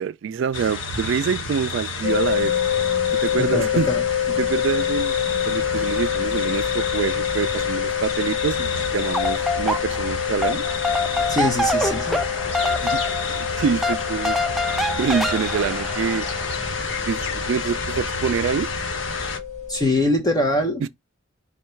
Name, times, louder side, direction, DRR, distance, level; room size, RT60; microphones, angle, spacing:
voice 1, 0.0-2.5 3.2-3.9 4.4-5.2 5.5-10.6 12.8-13.0 13.3-14.4 15.0-16.3 17.1-18.7 20.8-20.9, right 7 dB, 75° right, 0.3 m, -26 dB
sound 1, 0.5-19.4, left 3 dB, 70° left, 0.9 m, -30 dB
sound 2, 2.0-19.8, left 10 dB, 35° left, 1.2 m, -27 dB
voice 2, 3.4-4.0 11.3-12.2 19.7-20.9, left 1 dB, 20° left, 0.8 m, -23 dB
sound 3, 8.9-10.1 10.4-16.6, left 1 dB, ahead, 0.4 m, -26 dB
5.4 x 2.2 x 4.3 m
head